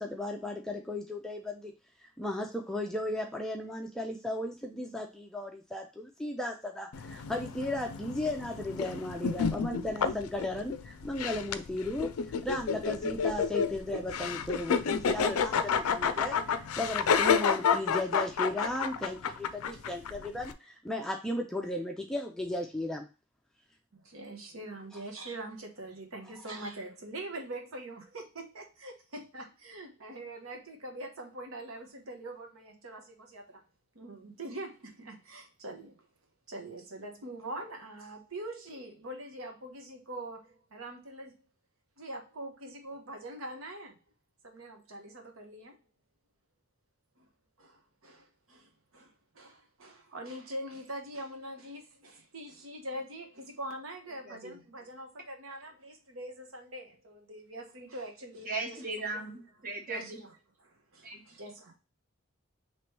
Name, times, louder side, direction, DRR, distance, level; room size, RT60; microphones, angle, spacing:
voice 1, 0.0-1.7 2.0-23.1 26.6-26.7, left 1 dB, 5° left, 1 dB, 0.4 m, -35 dB
sound 1, 6.9-20.5, left 6 dB, 90° left, 0.4 m, -30 dB
voice 2, 23.9-33.6 33.9-36.0 36.5-41.4 42.0-44.0 44.4-45.8 47.2-47.3 47.6-59.3 59.9-60.3 60.6-61.7, right 1 dB, 75° right, 3 dB, 1.0 m, -43 dB
voice 3, 54.2-54.6 58.4-60.2 61.0-61.2, right 2 dB, 40° right, 0 dB, 1.2 m, -38 dB
3.1 x 3.0 x 4.4 m, 0.31 s
head